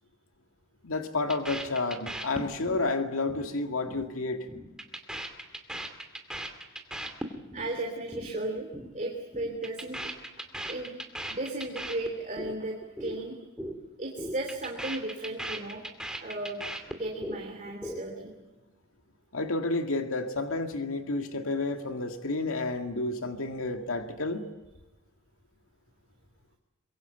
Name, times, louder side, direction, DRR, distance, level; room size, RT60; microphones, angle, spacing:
voice 1, 0.8-4.5 19.3-24.4, left 3 dB, 85° left, 5 dB, 2.1 m, -30 dB
sound 1, 1.3-2.9 3.1-3.5 3.7-4.1 4.3-7.7 8.0-8.3 8.6-8.9 9.2-12.6 12.8-13.2 13.4-13.8 14.0-17.4 17.7-18.3, right 1 dB, 5° right, 2.5 m, -38 dB
voice 2, 7.5-8.7 8.9-10.0 10.7-10.9 11.3-13.4 14.0-15.8 16.2-18.3, right 2 dB, 40° right, 1 dB, 3.0 m, -35 dB
24.5 x 22.5 x 8.1 m, 1.1 s
head